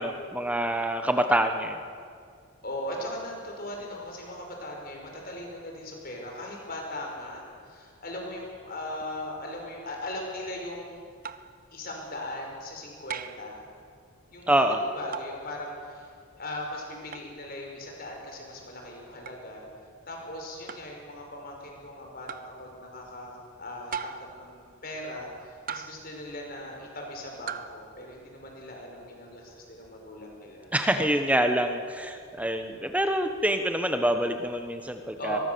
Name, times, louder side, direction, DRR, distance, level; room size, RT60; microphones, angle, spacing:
voice 1, 0.0-1.8 14.5-14.8 30.7-35.4, right 1 dB, 5° right, 6 dB, 1.2 m, -26 dB
voice 2, 2.6-11.0 11.7-13.7 14.3-16.1 16.4-19.7 20.1-30.7 35.2-35.4, left 1 dB, 45° left, 1 dB, 5.3 m, -39 dB
sound 1, 11.2-11.6 13.1-13.5 15.1-15.4 17.1-17.3 19.3-19.4 20.7-21.0 22.3-22.6 23.9-24.4 25.7-26.1 27.5-27.8, right 7 dB, 40° right, 0.8 m, -37 dB
23.5 x 22.0 x 7.0 m, 2.2 s
head